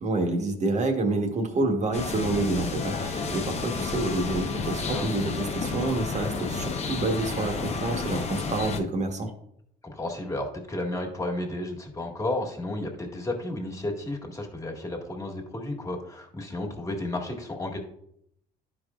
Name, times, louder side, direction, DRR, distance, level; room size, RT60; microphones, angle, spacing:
voice 1, 0.0-9.3, right 2 dB, 45° right, 4 dB, 1.3 m, -28 dB
sound 1, 1.9-8.8, left 4 dB, 40° left, 0.9 m, -31 dB
voice 2, 9.8-17.8, left 1 dB, 20° left, 1 dB, 1.8 m, -32 dB
11.5 x 5.0 x 2.4 m, 0.73 s
cardioid pair, 110°, 17 cm